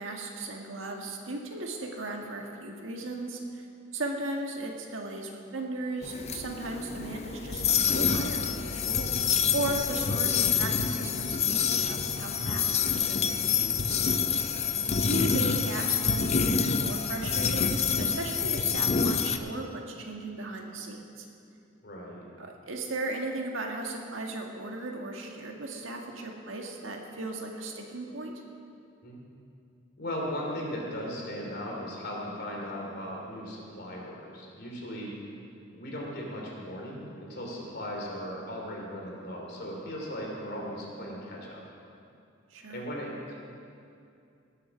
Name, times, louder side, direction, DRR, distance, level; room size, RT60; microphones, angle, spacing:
voice 1, 0.0-3.7 3.9-9.3 9.5-14.0 15.0-21.3 22.4-28.3 42.5-42.8, right 2 dB, 80° right, 1 dB, 1.7 m, -36 dB
sound 1, 6.0-19.4, left 6 dB, 35° left, 0.5 m, -27 dB
voice 2, 14.3-14.9 21.8-22.2 29.0-29.2 30.0-35.1 35.7-41.6 42.7-43.3, equal, 55° left, -2 dB, 3.2 m, -37 dB
18.5 x 7.6 x 6.2 m, 2.5 s
head